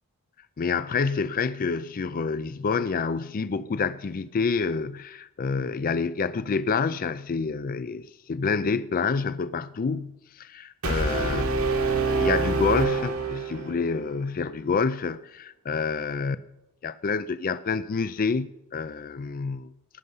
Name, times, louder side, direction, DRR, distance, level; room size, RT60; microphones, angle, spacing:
voice 1, 0.6-11.4 12.0-16.4 16.8-19.7, left 5 dB, 40° left, 0.4 m, -28 dB
Brass instrument, 10.8-13.9, right 4 dB, 70° right, 1.6 m, -26 dB
19.0 x 6.7 x 5.5 m
head